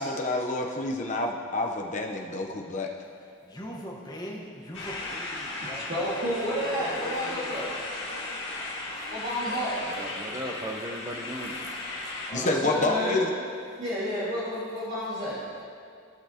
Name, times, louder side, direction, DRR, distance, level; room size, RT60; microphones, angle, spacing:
voice 1, 0.0-2.9 12.3-13.3, left 2 dB, 35° left, 1 dB, 0.8 m, -28 dB
voice 2, 3.0-7.7 12.0-12.6, equal, 20° left, -4 dB, 1.2 m, -42 dB
sound 1, 4.7-12.3, left 2 dB, 65° left, 1.8 m, -36 dB
voice 3, 5.9-7.6 9.1-9.8 12.3-13.2 13.8-15.4, equal, 40° right, -10 dB, 2.0 m, -30 dB
voice 4, 6.8-8.5 8.8-10.4, left 2 dB, 90° left, -5 dB, 1.1 m, -46 dB
voice 5, 9.8-11.6 15.3-15.6, right 1 dB, 15° right, 0 dB, 0.8 m, -37 dB
17.0 x 5.8 x 2.9 m, 2.4 s
head